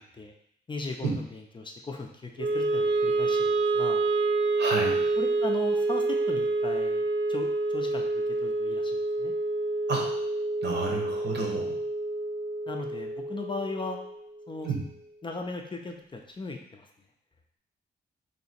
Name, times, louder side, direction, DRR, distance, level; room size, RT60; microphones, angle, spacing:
voice 1, 0.7-4.0 5.2-9.3 12.7-14.0 14.5-14.7 15.2-16.9, left 3 dB, 25° left, 2 dB, 0.4 m, -38 dB
Wind instrument woodwind instrument, 2.4-14.6, right 2 dB, 85° right, 0.4 m, -28 dB
voice 2, 4.6-5.0 9.9-10.1 10.6-11.8 14.6-14.8, right 3 dB, 70° right, 0 dB, 1.0 m, -30 dB
3.2 x 2.8 x 4.2 m, 0.70 s
wide cardioid pair, 115°, 19 cm